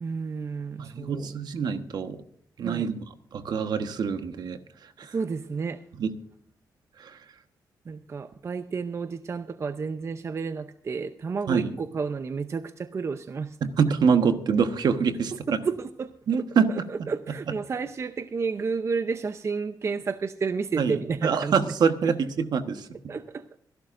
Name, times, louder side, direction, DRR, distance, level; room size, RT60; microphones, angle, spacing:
voice 1, 0.0-1.3 2.6-2.9 5.1-5.8 7.9-13.6 15.5-16.1 16.7-21.6 22.0-22.1 23.1-23.6, right 5 dB, 35° right, 10 dB, 0.6 m, -31 dB
voice 2, 0.8-2.2 2.6-2.9 3.3-4.6 5.0-5.1 6.0-6.1 7.0-7.1 11.5-11.7 13.6-15.3 16.3-16.7 17.0-17.1 20.8-20.9 21.2-22.9, right 6 dB, 65° right, 8 dB, 1.3 m, -25 dB
25.5 x 11.5 x 2.6 m, 0.63 s
cardioid pair, 115°, 8 cm